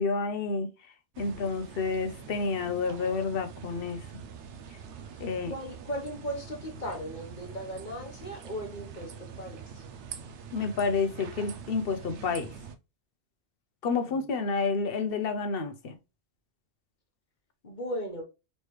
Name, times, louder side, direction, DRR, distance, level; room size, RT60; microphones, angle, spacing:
voice 1, 0.0-4.1 5.2-5.5 10.5-12.5 13.8-16.0, left 4 dB, 60° left, 0.9 m, -30 dB
sound 1, 1.1-12.8, right 7 dB, 80° right, 0.9 m, -44 dB
voice 2, 5.1-9.9 14.1-14.2 17.6-18.2, equal, 40° left, 1.3 m, -38 dB
4.2 x 3.2 x 3.1 m
omnidirectional pair, 1.2 m